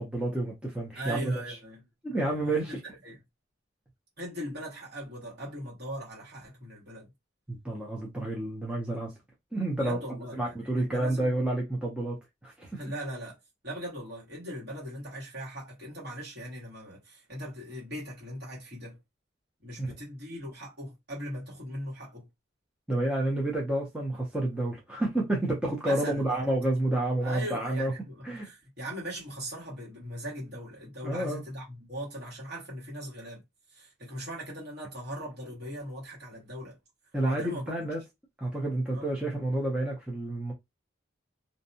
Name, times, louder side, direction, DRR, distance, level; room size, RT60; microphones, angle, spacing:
voice 1, 0.0-1.3 2.0-2.8 7.5-9.1 9.5-10.0 10.4-12.2 12.4-12.8 19.8-19.9 22.9-27.9 28.2-28.5 31.0-31.4 37.1-38.0 38.4-40.5, right 1 dB, 5° right, 0.6 m, -29 dB
voice 2, 0.9-1.8 2.1-3.2 4.2-7.1 9.7-11.3 12.8-13.4 13.6-19.0 19.6-22.3 25.8-26.4 27.2-33.4 33.7-36.8 37.3-37.8 38.9-39.1, right 1 dB, 55° right, 1.4 m, -40 dB
2.6 x 2.2 x 2.7 m
head